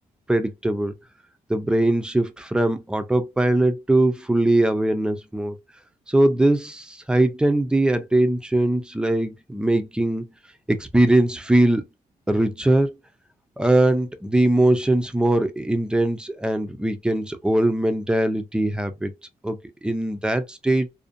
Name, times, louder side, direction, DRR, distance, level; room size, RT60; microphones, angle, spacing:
voice 1, 0.3-0.9 1.5-5.6 6.1-10.3 10.7-11.8 12.3-12.9 13.6-19.1 19.4-20.9, right 1 dB, 5° right, 0.3 m, -21 dB
2.5 x 2.1 x 2.5 m
wide cardioid pair, 145°, 16 cm